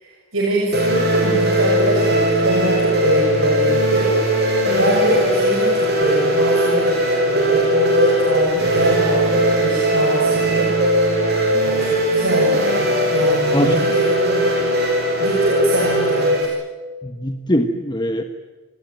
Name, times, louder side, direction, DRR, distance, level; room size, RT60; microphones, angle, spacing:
voice 1, 0.0-4.4 4.8-7.0 7.2-10.7 11.6-14.6 15.2-16.5, right 1 dB, 65° right, -1 dB, 6.6 m, -23 dB
sound 1, 0.7-16.5, right 1 dB, 45° right, 6.9 m, -18 dB
voice 2, 13.5-13.9 17.0-18.2, equal, 20° left, 6 dB, 1.3 m, -21 dB
28.5 x 20.0 x 9.3 m, 1.4 s
head